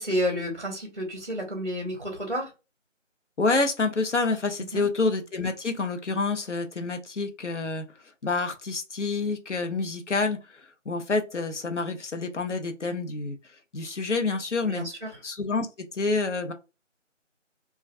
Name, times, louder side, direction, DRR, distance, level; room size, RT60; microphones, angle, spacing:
voice 1, 0.0-2.5 4.7-4.9 14.6-15.1, equal, 40° right, 0.6 m, -30 dB
voice 2, 3.4-7.9 8.2-13.4 13.7-14.9 15.2-16.5, left 3 dB, 65° left, 0.7 m, -28 dB
2.3 x 2.2 x 2.5 m
figure-of-eight pair, 170°, 38 cm